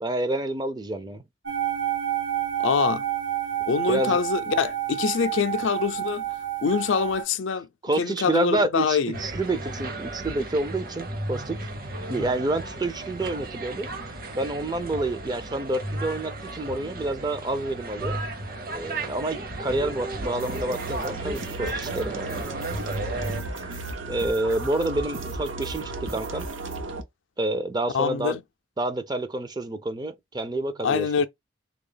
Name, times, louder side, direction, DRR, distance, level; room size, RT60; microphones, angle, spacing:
voice 1, 0.0-1.2 3.9-4.2 7.8-11.6 12.1-18.2 18.7-22.4 24.1-26.5 27.4-28.4 28.8-31.1, right 2 dB, 20° right, 0.4 m, -28 dB
sound 1, 1.5-7.2, right 12 dB, 65° right, 1.1 m, -29 dB
voice 2, 2.6-3.0 3.7-6.2 6.6-7.7 8.0-9.2 12.1-12.3 27.9-28.4 30.8-31.3, left 6 dB, 75° left, 0.4 m, -25 dB
sound 2, 9.1-23.4, right 2 dB, 50° right, 0.8 m, -34 dB
sound 3, 20.2-27.0, right 2 dB, 85° right, 0.7 m, -34 dB
3.4 x 2.3 x 3.8 m
head